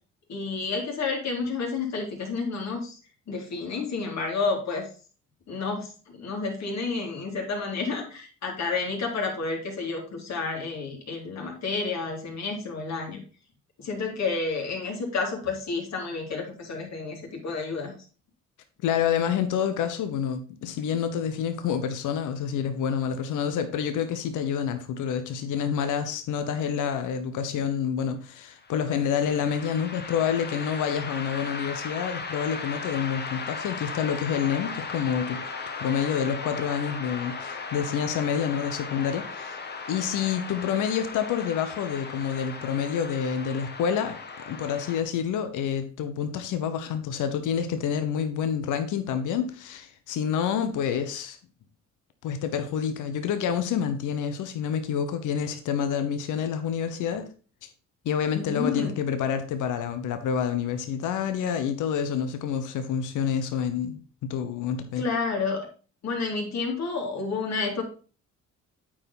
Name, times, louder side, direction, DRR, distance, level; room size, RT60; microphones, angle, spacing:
voice 1, 0.3-3.0 3.3-4.9 5.5-13.2 13.8-17.9 58.3-58.9 65.0-65.7 66.0-67.9, left 4 dB, 60° left, 3.0 m, -30 dB
voice 2, 18.8-35.4 35.8-39.6 39.9-44.2 44.5-51.4 52.2-57.3 57.6-57.7 58.0-65.1, left 8 dB, 85° left, 1.0 m, -28 dB
sound 1, 28.6-45.0, left 4 dB, 35° left, 1.2 m, -37 dB
8.7 x 4.8 x 4.1 m
cardioid pair, 90°, 30 cm